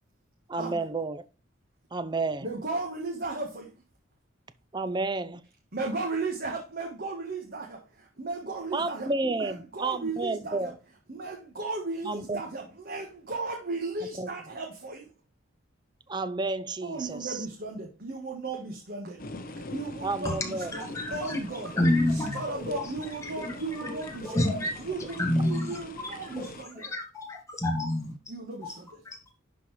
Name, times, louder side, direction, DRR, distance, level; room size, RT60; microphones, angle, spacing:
voice 1, 0.5-1.2 1.9-2.5 4.7-5.4 8.7-10.7 12.0-12.4 14.2-14.3 16.1-17.4 20.0-20.7 25.4-25.6, right 3 dB, 20° right, 0.5 m, -31 dB
voice 2, 2.4-3.7 5.7-10.7 11.1-15.1 16.8-21.8 22.1-26.9 28.3-28.7, right 3 dB, 45° right, 1.4 m, -36 dB
sound 1, 19.2-26.6, left 2 dB, 45° left, 1.0 m, -43 dB
voice 3, 20.7-21.4 21.7-22.9 23.4-23.5 23.8-24.0 24.2-24.7 25.2-26.5 26.8-28.1, left 1 dB, 15° left, 1.8 m, -28 dB
11.0 x 4.2 x 3.2 m
head